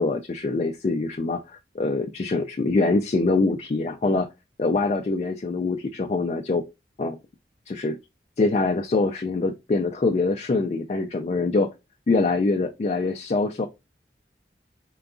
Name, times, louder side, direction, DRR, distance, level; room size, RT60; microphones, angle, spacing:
voice 1, 0.0-4.3 4.6-6.6 7.0-7.2 7.7-8.0 8.4-11.7 12.1-13.7, left 3 dB, 40° left, 0.3 m, -24 dB
3.8 x 2.3 x 3.6 m
head